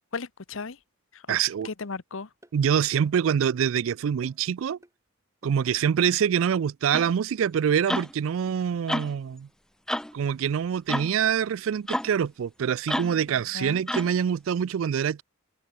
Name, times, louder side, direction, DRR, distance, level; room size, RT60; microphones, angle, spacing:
voice 1, 0.1-0.8 1.1-1.4 1.6-2.3 13.3-13.8, left 4 dB, 65° left, 0.9 m, -36 dB
voice 2, 1.3-1.7 2.5-4.8 5.4-9.5 10.1-15.2, right 8 dB, 65° right, 0.3 m, -25 dB
sound 1, 1.8-1.9 2.4-2.6 3.0-3.3 3.6-3.8 4.2-4.5 4.8-5.0 5.4-5.7 6.0-6.2, equal, 15° right, 7.3 m, -53 dB
sound 2, 6.9-7.1 7.9-8.1 8.9-9.1 9.9-10.1 10.9-11.1 11.9-12.1 12.9-13.2 13.9-14.2, left 1 dB, 5° left, 0.5 m, -29 dB
head